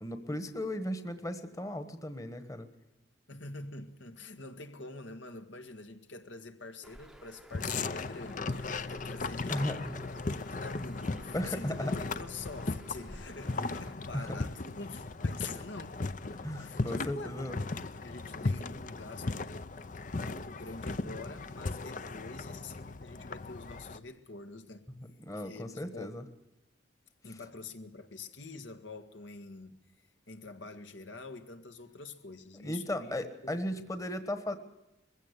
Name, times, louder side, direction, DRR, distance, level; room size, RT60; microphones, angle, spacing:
voice 1, 0.0-2.7 9.5-10.0 11.3-11.9 13.6-13.7 14.1-14.3 16.4-17.6 25.3-26.2 32.6-34.6, left 1 dB, 15° left, 1.3 m, -36 dB
voice 2, 3.3-10.0 10.2-15.9 16.4-17.3 17.9-19.5 20.1-24.8 25.3-26.2 27.2-29.8 30.3-33.1 33.4-33.8, left 3 dB, 75° left, 1.6 m, -46 dB
Bird, 6.8-13.9, right 1 dB, ahead, 0.9 m, -53 dB
sound 1, 7.5-24.0, left 3 dB, 40° left, 0.7 m, -37 dB
21.5 x 16.0 x 8.2 m
head